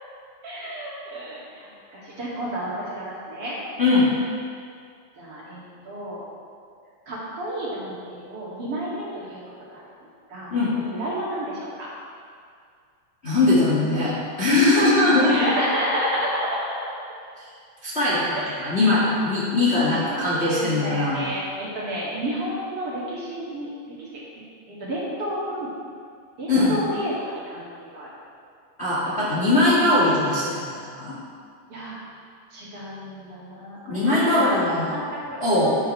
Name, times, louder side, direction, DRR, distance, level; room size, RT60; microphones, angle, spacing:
voice 1, 0.4-3.6 5.2-6.2 7.1-9.4 9.7-11.9 15.3-16.9 18.4-18.7 20.0-24.4 24.8-25.7 26.4-28.1 31.7-31.9 32.5-34.5 34.9-35.8, equal, 50° right, -7 dB, 2.8 m, -31 dB
voice 2, 13.2-15.5 17.4-17.5 17.8-21.2 26.5-26.8 28.8-31.1 33.8-34.9 35.4-35.7, left 2 dB, 25° left, -9 dB, 1.5 m, -21 dB
10.5 x 9.9 x 3.3 m, 2.2 s
omnidirectional pair, 3.6 m